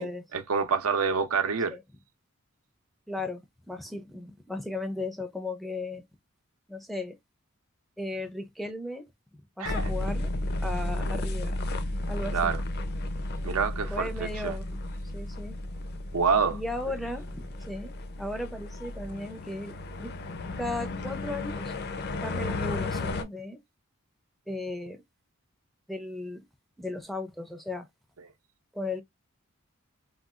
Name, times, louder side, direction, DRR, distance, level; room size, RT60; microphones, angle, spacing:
voice 1, 0.0-1.8 9.6-9.8 12.3-12.6 13.4-14.6 16.1-16.6, right 5 dB, 85° right, 0.6 m, -27 dB
voice 2, 3.1-6.0 6.7-7.2 8.0-9.0 9.3-10.3 10.6-11.5 12.1-12.5 13.9-14.7 15.1-15.6 16.5-20.1 20.6-21.8 22.2-23.6 24.5-25.0 25.9-26.4 26.8-27.9 28.7-29.0, left 2 dB, ahead, 0.4 m, -36 dB
sound 1, 9.6-23.2, left 2 dB, 50° left, 0.5 m, -33 dB
3.7 x 2.3 x 2.3 m
head